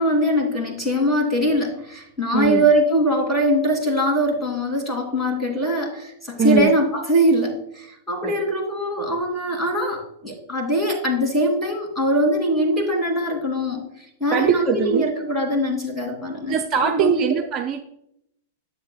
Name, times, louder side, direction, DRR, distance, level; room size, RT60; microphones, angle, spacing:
voice 1, 0.0-13.8 14.2-16.5 16.9-17.2, equal, 10° left, 0 dB, 2.7 m, -22 dB
voice 2, 2.3-2.7 6.4-6.7 8.2-8.4 14.3-15.1 16.5-17.8, right 6 dB, 30° right, 3 dB, 0.6 m, -21 dB
10.0 x 8.2 x 2.3 m, 0.76 s
figure-of-eight pair, 100°, 0 cm